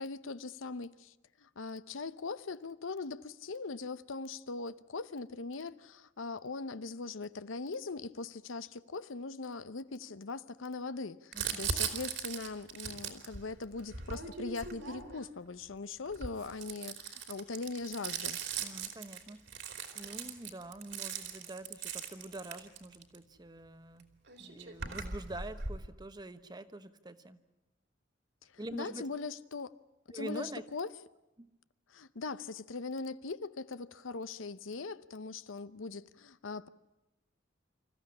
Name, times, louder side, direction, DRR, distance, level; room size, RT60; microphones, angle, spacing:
voice 1, 0.0-18.4 28.5-29.7 30.1-30.9 31.9-36.7, left 3 dB, 90° left, 0.8 m, -41 dB
voice 2, 11.3-11.7 18.6-19.5 19.9-24.1 24.4-27.4 28.6-29.1 30.1-30.6 31.4-31.5, right 1 dB, 20° right, 1.1 m, -45 dB
Crumpling crinkling, 11.3-15.4 16.1-23.2 24.0-24.1 24.3-25.9, right 6 dB, 60° right, 2.9 m, -39 dB
26.0 x 15.0 x 9.9 m
head